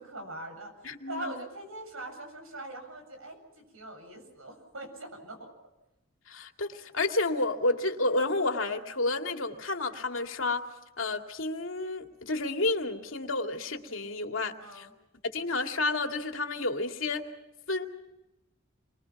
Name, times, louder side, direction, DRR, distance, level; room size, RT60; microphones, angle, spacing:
voice 1, 0.0-5.5 14.6-14.9, right 1 dB, 80° right, 4 dB, 7.8 m, -42 dB
voice 2, 0.8-1.4 6.3-10.6 11.0-14.9 15.3-17.3 17.7-17.9, left 2 dB, 70° left, 4 dB, 2.4 m, -30 dB
29.5 x 23.5 x 6.0 m, 0.97 s
head